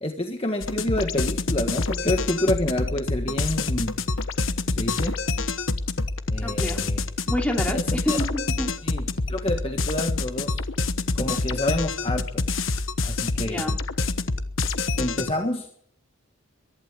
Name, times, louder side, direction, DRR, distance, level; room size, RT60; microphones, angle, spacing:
voice 1, 0.0-4.0 4.7-5.1 6.3-7.0 7.7-8.2 8.8-9.0 9.3-10.6 11.1-12.4 13.0-13.6 15.0-15.7, left 1 dB, 25° left, 4 dB, 1.5 m, -28 dB
sound 1, 0.6-15.3, left 3 dB, 65° left, 1.2 m, -27 dB
voice 2, 6.4-6.8 7.3-8.7 13.4-13.8, equal, 5° left, 2 dB, 2.9 m, -28 dB
23.0 x 12.0 x 9.7 m, 0.64 s
head